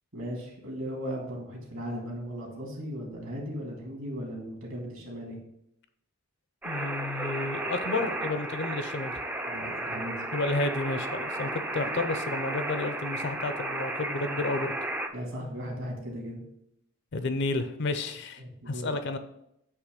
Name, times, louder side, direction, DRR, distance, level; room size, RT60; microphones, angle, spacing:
voice 1, 0.1-5.4 9.5-10.2 11.8-11.9 15.1-16.4 18.4-18.9, equal, 65° right, -1 dB, 2.1 m, -37 dB
voice 2, 6.6-9.1 10.3-14.7 17.1-19.2, left 2 dB, 50° left, 9 dB, 0.5 m, -31 dB
sound 1, 6.6-15.1, right 1 dB, 5° right, 0.4 m, -34 dB
8.2 x 3.0 x 5.1 m, 0.78 s
head